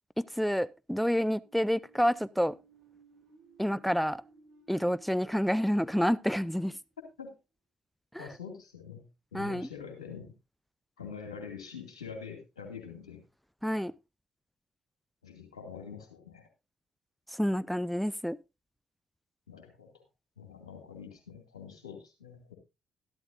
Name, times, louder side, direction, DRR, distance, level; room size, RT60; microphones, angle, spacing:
voice 1, 0.2-2.6 3.6-4.2 4.7-6.8 8.1-8.3 9.3-9.7 13.6-13.9 17.3-18.4, equal, ahead, 0.5 m, -29 dB
sound 1, 1.4-7.1, right 3 dB, 70° right, 3.6 m, -61 dB
voice 2, 8.2-9.1 9.3-10.3 11.0-13.2 15.2-16.4 19.5-20.0 20.4-22.5, left 6 dB, 85° left, 2.3 m, -45 dB
13.0 x 12.5 x 2.6 m
figure-of-eight pair, 40°, 3 cm